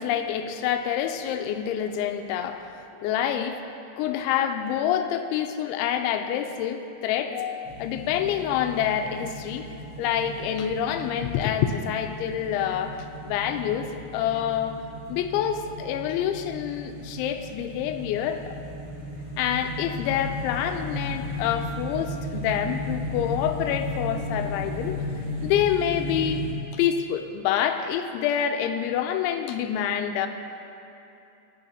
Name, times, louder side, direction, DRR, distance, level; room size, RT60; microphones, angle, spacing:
voice 1, 0.0-3.6 4.0-14.8 15.1-18.6 19.4-25.1 25.4-26.5 26.7-30.3, left 9 dB, 85° left, 7 dB, 2.9 m, -27 dB
sound 1, 7.6-26.5, left 1 dB, 50° right, 1.9 m, -35 dB
20.5 x 9.9 x 2.8 m, 2.8 s
omnidirectional pair, 5.4 m